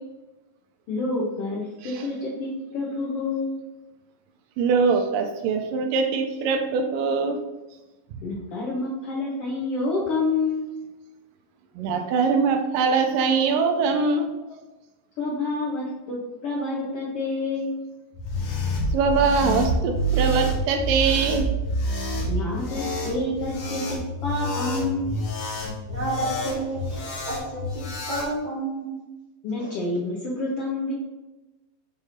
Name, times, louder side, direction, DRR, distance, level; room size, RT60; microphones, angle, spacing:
voice 1, 0.9-3.6 8.2-10.7 15.2-16.2 16.4-17.8 22.3-25.1 29.4-30.9, left 2 dB, 80° left, -5 dB, 1.3 m, -28 dB
voice 2, 4.6-7.4 11.8-14.3 18.9-21.5, right 5 dB, 80° right, 5 dB, 2.2 m, -22 dB
sound 1, 18.1-28.3, right 1 dB, 65° left, 1.3 m, -28 dB
voice 3, 25.9-29.0 29.6-29.7, right 2 dB, 55° right, -4 dB, 1.4 m, -31 dB
6.7 x 2.7 x 5.7 m, 1.1 s
omnidirectional pair, 4.0 m